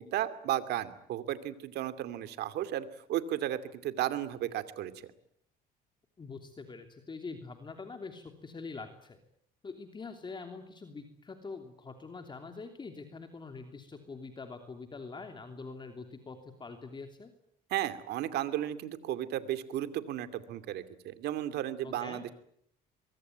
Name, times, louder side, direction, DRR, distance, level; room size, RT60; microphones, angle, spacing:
voice 1, 0.0-5.1 17.7-22.3, right 12 dB, 75° right, 12 dB, 2.6 m, -34 dB
voice 2, 6.2-9.2 9.6-17.3 21.8-22.2, left 4 dB, 25° left, 6 dB, 3.0 m, -44 dB
23.5 x 23.0 x 9.3 m, 0.70 s
cardioid pair, 110°, 17 cm